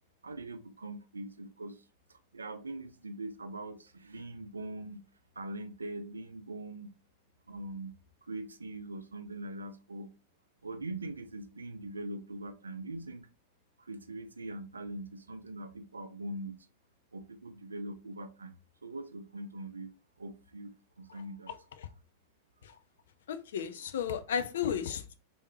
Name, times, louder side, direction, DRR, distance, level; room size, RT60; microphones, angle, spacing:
voice 1, 0.2-5.0 5.4-6.9 7.5-8.0 8.2-10.1 10.6-13.3 13.8-16.6 17.1-21.5, right 2 dB, 75° right, 0.4 m, -42 dB
voice 2, 23.3-25.2, left 8 dB, 60° left, 0.4 m, -33 dB
3.4 x 2.7 x 3.0 m
figure-of-eight pair, 90°, 0 cm